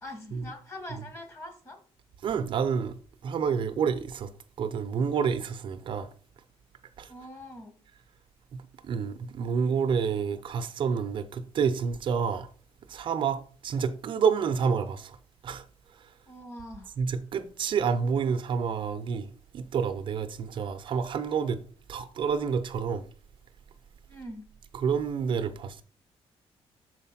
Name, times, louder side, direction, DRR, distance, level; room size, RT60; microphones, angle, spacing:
voice 1, 0.0-1.8 7.1-7.7 16.3-16.9 24.1-24.4, left 1 dB, 25° left, 1.4 m, -43 dB
voice 2, 2.2-3.0 3.2-4.3 4.6-6.1 7.0-7.1 8.5-12.5 12.9-15.2 15.4-15.6 17.0-21.6 21.9-23.0 24.7-25.8, right 6 dB, 50° right, 0.6 m, -29 dB
6.4 x 4.7 x 5.7 m
cardioid pair, 165°, 11 cm